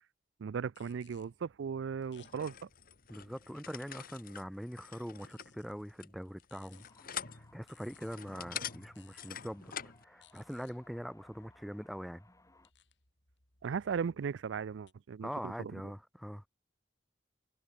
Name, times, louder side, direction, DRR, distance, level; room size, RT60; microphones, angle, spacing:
voice 1, 0.4-2.7 13.6-15.7, right 6 dB, 90° right, 0.4 m, -37 dB
sound 1, 0.7-4.2 5.0-14.9, left 8 dB, 70° left, 6.1 m, -67 dB
sound 2, 2.1-10.0, left 9 dB, 55° left, 1.6 m, -46 dB
voice 2, 3.1-6.8 7.3-9.7 10.0-12.3 15.2-16.5, equal, ahead, 0.4 m, -43 dB
sound 3, 6.7-12.7, left 2 dB, 20° left, 3.7 m, -65 dB
head